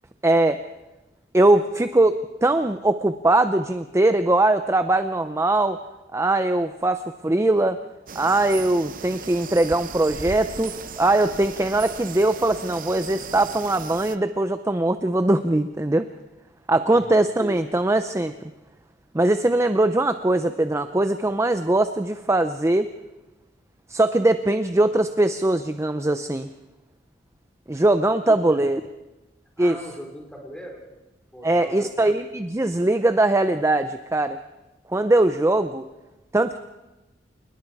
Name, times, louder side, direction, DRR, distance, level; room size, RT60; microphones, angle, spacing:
voice 1, 0.2-0.6 1.3-5.8 6.1-7.8 8.2-16.1 16.7-18.3 19.1-22.9 23.9-26.5 27.7-28.8 29.6-29.8 31.4-34.4 34.9-35.9 36.3-36.6, right 2 dB, 15° right, 9 dB, 0.6 m, -21 dB
sound 1, 8.1-14.2, right 5 dB, 50° right, 0.8 m, -37 dB
voice 2, 28.3-28.7 29.6-30.8 31.3-31.8, equal, 5° left, 0 dB, 4.8 m, -39 dB
28.5 x 20.0 x 4.8 m, 1.0 s
head